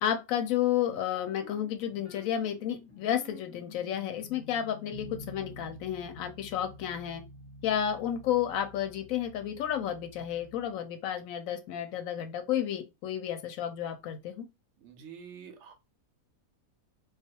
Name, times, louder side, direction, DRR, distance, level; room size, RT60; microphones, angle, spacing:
voice 1, 0.0-7.2 7.6-14.4, left 10 dB, 70° left, 0.9 m, -31 dB
sound 1, 1.0-10.7, left 1 dB, 35° left, 0.7 m, -50 dB
voice 2, 14.8-15.7, right 7 dB, 65° right, 0.7 m, -47 dB
2.3 x 2.3 x 2.7 m
omnidirectional pair, 1.6 m